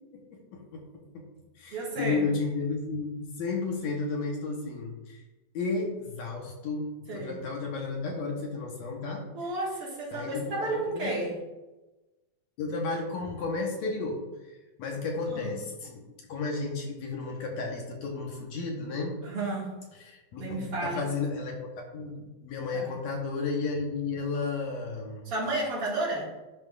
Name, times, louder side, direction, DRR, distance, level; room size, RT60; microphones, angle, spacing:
voice 1, 0.1-0.8 1.1-1.2 1.6-5.2 5.5-9.3 10.1-11.2 12.6-19.2 20.1-25.3, left 4 dB, 70° left, 0 dB, 2.2 m, -33 dB
voice 2, 1.7-2.3 7.1-7.4 9.3-11.4 15.3-15.6 19.2-19.8 20.4-21.0 22.7-22.9 25.2-26.4, right 2 dB, 50° right, -5 dB, 2.4 m, -32 dB
11.0 x 5.7 x 2.4 m, 1.1 s
omnidirectional pair, 3.5 m